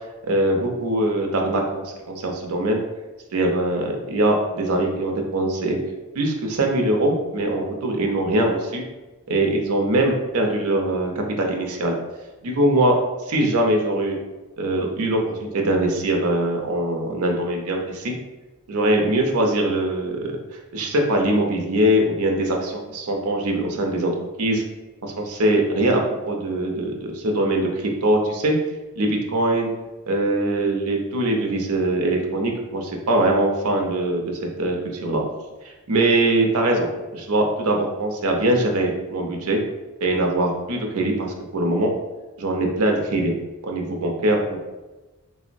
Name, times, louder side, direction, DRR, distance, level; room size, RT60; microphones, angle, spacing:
voice 1, 0.2-2.8 3.3-5.8 6.1-8.8 9.3-11.9 12.4-13.0 13.3-14.2 14.6-18.1 18.7-20.1 20.7-24.1 24.4-24.6 25.0-28.5 29.0-29.7 30.1-34.3 34.6-34.8 35.0-35.2 35.9-39.6 40.0-41.9 42.4-43.3 43.6-44.6, right 1 dB, 75° right, 2 dB, 0.5 m, -22 dB
3.6 x 2.0 x 2.5 m, 1.1 s
head